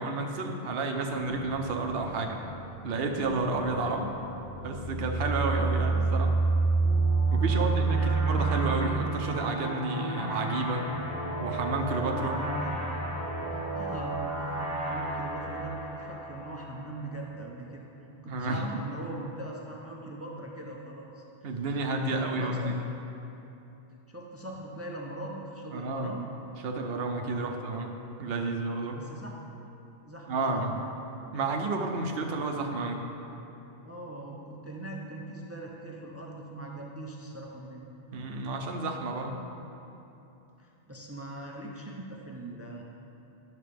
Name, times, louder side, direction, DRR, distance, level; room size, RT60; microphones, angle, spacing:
voice 1, 0.0-2.4 2.8-4.1 4.6-6.3 7.3-8.0 8.3-10.8 11.4-12.3 18.3-18.7 21.4-22.8 25.7-26.1 26.6-27.9 28.2-29.0 30.3-30.7 31.3-33.0 38.1-39.4, right 3 dB, 65° right, 3 dB, 0.9 m, -31 dB
sound 1, 1.1-9.0, right 4 dB, 50° left, 1.2 m, -28 dB
sound 2, 6.8-17.1, right 1 dB, 15° left, 1.5 m, -34 dB
voice 2, 7.4-8.7 12.3-13.0 13.5-17.9 18.2-21.6 22.1-22.7 24.1-26.3 28.9-29.5 30.1-30.9 33.8-37.9 40.6-42.8, right 1 dB, 20° right, -1 dB, 0.5 m, -41 dB
11.0 x 6.6 x 3.4 m, 2.9 s
omnidirectional pair, 1.1 m